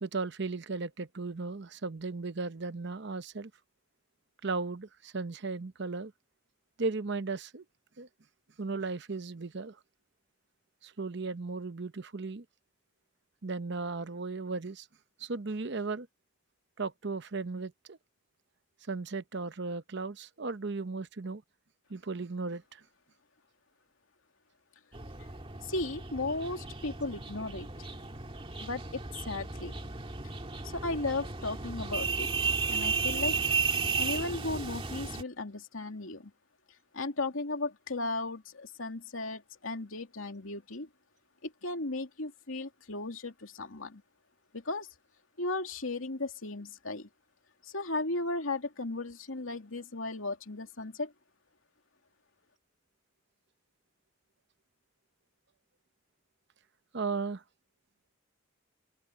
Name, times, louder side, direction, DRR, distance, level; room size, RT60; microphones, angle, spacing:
voice 1, 0.0-3.5 4.4-6.1 6.8-7.6 8.0-8.1 8.6-9.8 10.8-12.4 13.4-14.9 15.2-16.1 16.8-18.0 18.9-21.4 21.9-22.8 56.9-57.4, right 3 dB, 60° right, 0.8 m, -36 dB
sound 1, 24.9-35.2, right 5 dB, 25° right, 2.1 m, -34 dB
voice 2, 25.6-27.9 28.6-29.7 30.6-32.3 32.7-33.4 33.9-36.3 36.9-40.9 41.4-44.0 44.5-44.9 45.4-47.1 47.6-51.1, left 2 dB, 85° left, 2.7 m, -36 dB
open air
head